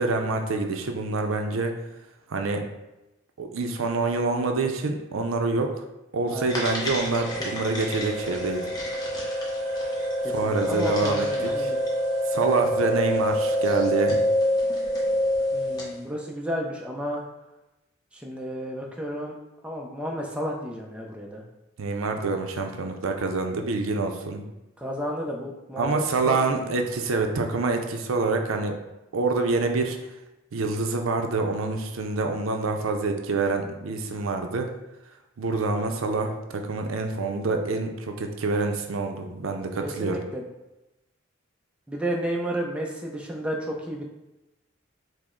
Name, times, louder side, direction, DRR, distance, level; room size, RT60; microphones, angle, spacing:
voice 1, 0.0-1.7 2.3-2.6 3.4-5.8 6.1-8.6 10.3-11.3 12.3-14.2 21.8-24.4 25.8-28.8 29.1-30.0 30.5-34.7 35.4-40.2, right 3 dB, 85° right, 4 dB, 0.5 m, -26 dB
voice 2, 6.3-6.6 10.2-11.8 15.5-17.2 18.1-19.3 19.6-21.4 24.8-26.4 39.8-40.4 41.9-44.1, equal, 5° right, -1 dB, 0.4 m, -32 dB
sound 1, 6.5-16.0, equal, 20° left, 0.7 m, -26 dB
4.9 x 2.0 x 3.7 m, 0.99 s
head